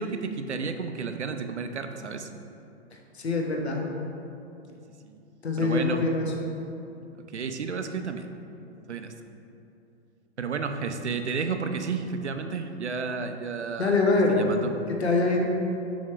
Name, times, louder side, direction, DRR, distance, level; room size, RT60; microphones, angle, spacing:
voice 1, 0.0-2.3 5.0-5.2 5.6-6.0 7.1-8.3 8.9-9.1 10.4-14.0 14.3-14.7, right 5 dB, 80° right, 7 dB, 0.5 m, -32 dB
voice 2, 3.1-3.8 5.4-6.3 13.8-14.5 14.9-15.4, left 3 dB, 70° left, 1 dB, 1.0 m, -24 dB
6.2 x 3.6 x 4.7 m, 2.8 s
figure-of-eight pair, 105°, 33 cm